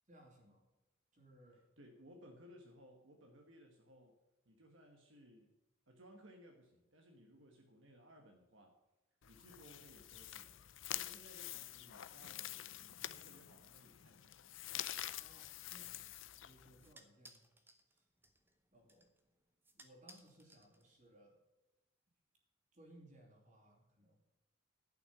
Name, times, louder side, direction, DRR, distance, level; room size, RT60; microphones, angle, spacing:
voice 1, 0.1-0.7 1.1-1.6 15.2-16.1 16.4-17.4 17.9-18.0 18.7-19.1 19.7-21.4 22.7-24.2, right 1 dB, 35° right, 0 dB, 3.0 m, -63 dB
voice 2, 1.8-4.2 4.4-5.5 5.9-8.7 9.3-10.6 10.9-14.3, equal, 60° right, 2 dB, 1.4 m, -61 dB
sound 1, 9.2-16.9, left 13 dB, 65° left, 0.5 m, -47 dB
sound 2, 14.8-21.2, right 1 dB, 10° right, 0.8 m, -66 dB
11.0 x 6.0 x 8.2 m, 1.0 s
head